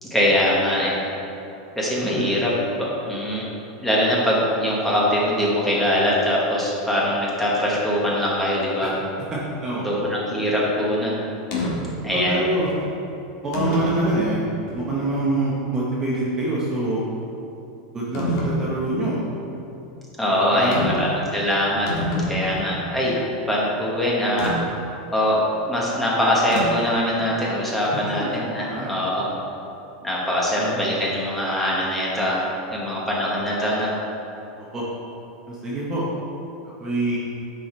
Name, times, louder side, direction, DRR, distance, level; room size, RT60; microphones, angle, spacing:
voice 1, 0.0-1.0 1.7-2.5 2.8-3.4 3.8-8.9 9.8-11.2 12.0-12.4 20.2-21.9 22.3-23.2 23.5-24.6 25.1-29.2 30.0-32.4 32.7-33.9, equal, 5° left, -6 dB, 1.3 m, -22 dB
voice 2, 2.0-2.3 8.8-8.9 9.3-10.0 12.1-12.7 13.4-14.4 14.7-17.0 17.9-19.2 20.5-21.1 28.5-28.9 30.6-30.8 34.5-34.9 35.5-36.0 36.8-37.2, right 2 dB, 15° right, -6 dB, 1.0 m, -25 dB
sound 1, 11.5-11.7 12.7-12.8 13.5-14.1 14.7-14.8 18.1-18.6 20.7-21.1 21.4-21.5 21.7-22.8 24.4-24.5 26.5-26.9, left 2 dB, 50° left, 1.9 m, -26 dB
9.8 x 5.0 x 4.4 m, 2.9 s
supercardioid pair, 170°, 4 cm